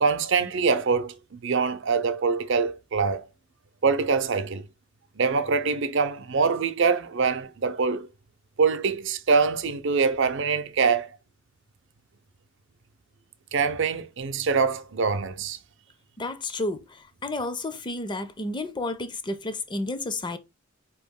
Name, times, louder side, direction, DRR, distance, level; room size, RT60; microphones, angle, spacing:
voice 1, 0.0-1.2 1.4-3.3 3.8-4.6 5.2-8.1 8.6-11.1 13.5-15.6, right 5 dB, 65° right, 0.6 m, -24 dB
voice 2, 16.2-16.9 17.2-20.4, left 2 dB, 20° left, 0.5 m, -31 dB
4.7 x 3.0 x 3.6 m
head